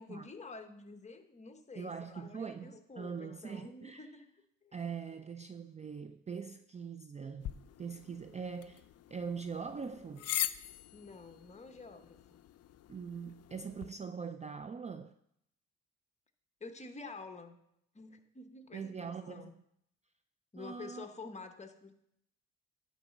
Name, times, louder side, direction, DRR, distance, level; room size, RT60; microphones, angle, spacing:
voice 1, 0.0-4.3 4.6-4.8 10.9-12.4 16.6-17.6 17.9-19.5 20.5-21.9, left 3 dB, 25° left, 7 dB, 1.0 m, -49 dB
voice 2, 1.8-4.1 4.7-8.8 9.1-10.4 12.9-15.1 18.7-19.5 20.6-21.1, right 6 dB, 25° right, 10 dB, 0.3 m, -42 dB
sound 1, 7.4-13.9, left 12 dB, 55° left, 0.5 m, -42 dB
11.0 x 4.0 x 6.5 m, 0.76 s
cardioid pair, 90°, 30 cm